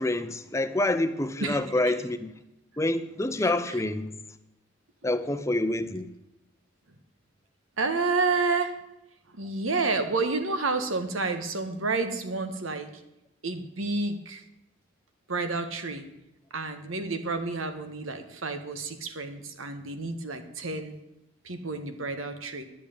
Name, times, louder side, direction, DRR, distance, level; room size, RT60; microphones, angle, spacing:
voice 1, 0.0-2.3 2.8-4.1 5.0-6.1, left 1 dB, 15° left, 10 dB, 0.7 m, -27 dB
voice 2, 3.4-3.8 7.8-8.7 9.3-12.9 13.4-14.4 15.3-16.1 16.5-21.0 21.4-22.7, right 3 dB, 85° right, 8 dB, 1.6 m, -30 dB
11.5 x 8.4 x 8.6 m, 0.88 s
head